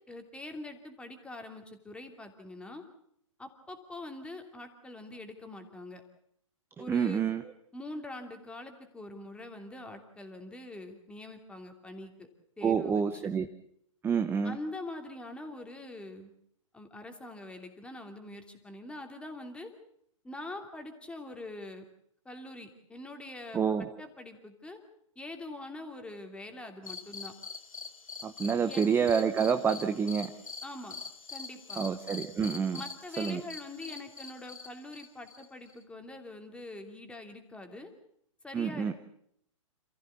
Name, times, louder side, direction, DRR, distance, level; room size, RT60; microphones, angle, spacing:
voice 1, 0.1-2.8 3.4-6.0 6.8-7.2 7.7-12.3 12.6-13.2 14.4-16.3 16.7-19.7 20.2-21.8 22.2-24.8 25.2-27.3 28.5-28.9 30.6-31.0 31.3-31.8 32.7-37.9 38.4-38.9, left 2 dB, 5° left, 5 dB, 2.8 m, -44 dB
voice 2, 6.8-7.4 12.6-13.5 14.0-14.6 23.5-23.9 28.2-30.3 31.8-32.8 33.2-33.4 38.5-38.9, right 6 dB, 10° right, 8 dB, 0.9 m, -28 dB
sound 1, 26.8-35.8, left 5 dB, 85° left, 2.4 m, -44 dB
28.0 x 15.0 x 8.2 m, 0.71 s
hypercardioid pair, 125°, 17 cm